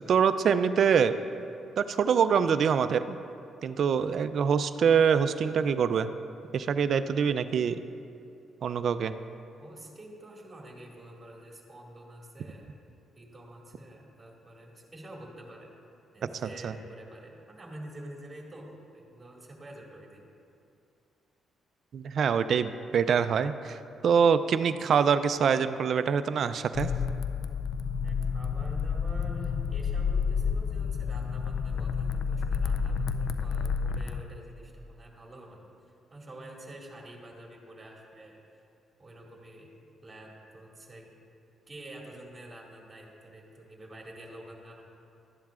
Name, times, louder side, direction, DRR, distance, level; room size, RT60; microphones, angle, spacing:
voice 1, 0.1-1.1 1.8-3.2 3.6-6.1 6.5-7.8 8.6-9.1 16.6-16.7 21.9-23.8 24.0-26.9, right 7 dB, 60° right, 11 dB, 0.4 m, -24 dB
voice 2, 9.6-12.7 13.2-15.7 16.1-20.3 28.0-35.6 36.1-38.4 39.0-39.7 40.0-41.1 41.7-44.9, right 1 dB, 20° right, -1 dB, 2.0 m, -47 dB
sound 1, 26.7-34.2, left 6 dB, 70° left, 0.4 m, -30 dB
13.0 x 10.5 x 2.4 m, 2.5 s
cardioid pair, 90°, 0 cm